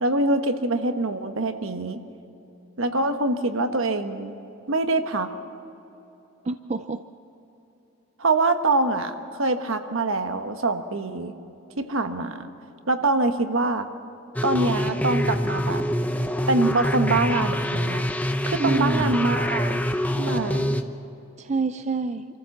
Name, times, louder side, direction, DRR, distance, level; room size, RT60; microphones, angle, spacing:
voice 1, 0.0-2.0 2.8-4.3 4.7-5.3 8.2-11.3 11.8-12.5 12.9-13.9 14.4-15.8 16.5-18.1 18.5-19.7 20.2-20.8, right 2 dB, 65° right, 7 dB, 1.2 m, -24 dB
voice 2, 6.4-7.0 18.6-19.2 21.4-22.3, right 4 dB, 30° right, 9 dB, 0.4 m, -27 dB
sound 1, 14.4-20.8, equal, 5° left, 0.7 m, -25 dB
26.5 x 14.5 x 7.2 m, 2.9 s
head